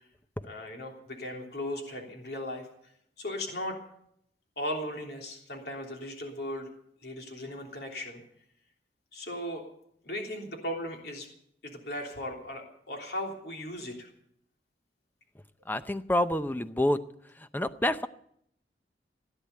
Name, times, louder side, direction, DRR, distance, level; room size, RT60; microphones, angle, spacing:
voice 1, 0.4-2.7 3.2-3.8 4.6-6.7 7.0-8.2 9.1-9.6 10.0-11.3 11.6-14.1, left 1 dB, 65° left, 1 dB, 3.3 m, -37 dB
voice 2, 15.7-17.0 17.5-18.1, left 1 dB, 10° left, 12 dB, 0.6 m, -27 dB
16.5 x 10.0 x 8.5 m, 0.70 s
head